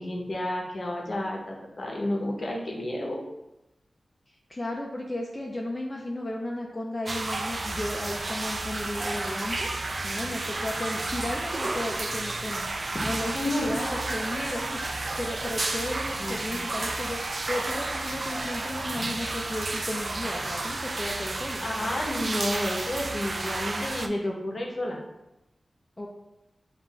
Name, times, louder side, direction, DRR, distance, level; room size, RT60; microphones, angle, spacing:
voice 1, 0.0-3.2 12.9-13.8 16.2-16.7 19.0-19.1 21.6-25.0, left 1 dB, 50° left, 0 dB, 0.8 m, -31 dB
voice 2, 4.5-9.7 10.0-17.2 17.5-21.6 26.0-26.1, left 1 dB, 20° left, -2 dB, 0.4 m, -34 dB
sound 1, 7.1-24.1, right 2 dB, 45° right, 0.3 m, -32 dB
7.2 x 2.4 x 2.3 m, 0.94 s
wide cardioid pair, 120°, 0 cm